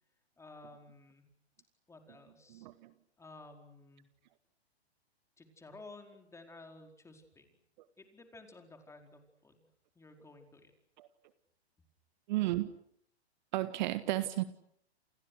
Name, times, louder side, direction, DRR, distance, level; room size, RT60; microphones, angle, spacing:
voice 1, 0.4-1.3 1.9-2.7 3.2-4.1 5.4-7.6 8.0-9.7 9.9-10.7, left 2 dB, 10° left, 4 dB, 4.8 m, -54 dB
voice 2, 12.3-12.7 13.5-14.4, right 16 dB, 45° right, 12 dB, 1.6 m, -32 dB
30.0 x 29.5 x 6.5 m, 0.70 s
figure-of-eight pair, 120°, 33 cm